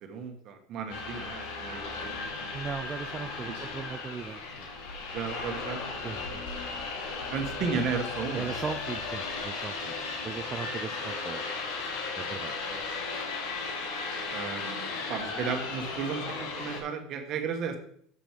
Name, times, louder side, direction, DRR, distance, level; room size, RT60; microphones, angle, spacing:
voice 1, 0.0-2.7 3.2-3.6 5.1-5.8 7.3-8.5 12.6-12.8 14.3-17.8, right 6 dB, 40° right, 6 dB, 1.3 m, -34 dB
sound 1, 0.9-16.8, left 4 dB, 65° left, 1.9 m, -36 dB
voice 2, 2.5-4.7 6.0-6.4 8.3-9.9 10.2-11.4 12.2-12.5, right 6 dB, 20° right, 8 dB, 0.4 m, -38 dB
6.9 x 6.2 x 5.0 m, 0.63 s
cardioid pair, 155°, 0 cm